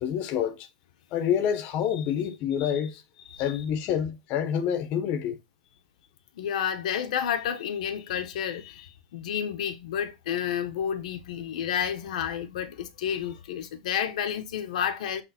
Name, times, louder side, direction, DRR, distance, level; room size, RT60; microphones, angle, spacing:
voice 1, 0.0-0.7 1.1-3.0 3.4-5.4, left 9 dB, 35° left, 1.4 m, -27 dB
voice 2, 3.2-3.7 6.3-15.2, left 9 dB, 70° left, 1.3 m, -31 dB
8.1 x 3.7 x 4.4 m
supercardioid pair, 155°, 4 cm